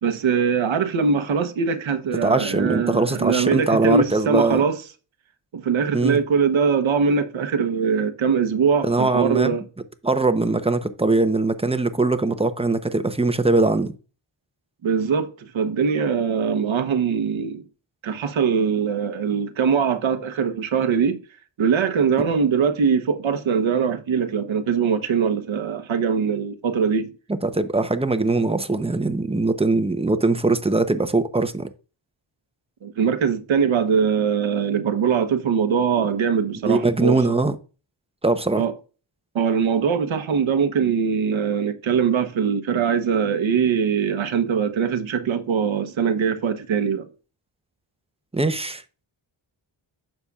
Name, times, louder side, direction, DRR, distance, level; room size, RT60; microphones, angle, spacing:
voice 1, 0.0-4.8 5.5-9.6 14.8-17.6 18.0-21.2 21.6-27.1 32.8-37.4 38.6-38.7 39.3-47.1, right 6 dB, 75° right, 1.1 m, -22 dB
voice 2, 2.2-4.6 5.9-6.2 8.8-9.6 10.0-13.9 27.4-31.7 36.0-36.1 36.7-37.5 38.2-38.6 48.3-48.8, right 2 dB, 10° right, 0.8 m, -21 dB
9.8 x 6.7 x 2.4 m
cardioid pair, 80°, 47 cm